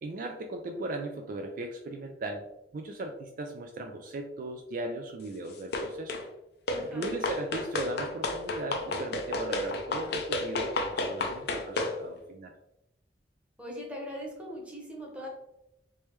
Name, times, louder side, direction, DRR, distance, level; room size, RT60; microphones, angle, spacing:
voice 1, 0.0-2.5 2.7-6.2 6.8-12.5, right 2 dB, 50° right, 4 dB, 0.3 m, -37 dB
sound 1, 5.7-6.3 6.7-12.0, left 2 dB, 60° left, 0.5 m, -32 dB
voice 2, 6.7-7.1 13.6-15.3, equal, 5° right, -3 dB, 1.0 m, -40 dB
3.3 x 3.2 x 3.0 m, 0.87 s
head